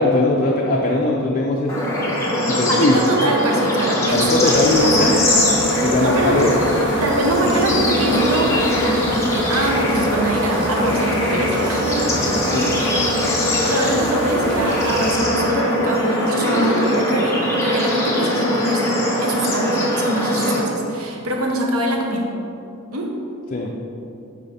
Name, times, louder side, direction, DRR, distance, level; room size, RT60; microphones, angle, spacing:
voice 1, 0.0-1.8 2.4-3.0 4.1-5.5 5.8-6.5 12.5-12.7 23.5-23.7, left 2 dB, 40° left, -1 dB, 0.5 m, -20 dB
Bird / Insect / Frog, 1.7-20.6, equal, 15° left, 1.2 m, -21 dB
voice 2, 2.7-4.9 5.7-6.4 7.0-12.3 13.6-22.3 22.9-23.1, right 1 dB, 85° right, 1 dB, 1.0 m, -24 dB
sound 1, 4.1-15.2, right 1 dB, 55° right, 1.0 m, -32 dB
8.6 x 4.8 x 4.2 m, 2.7 s
head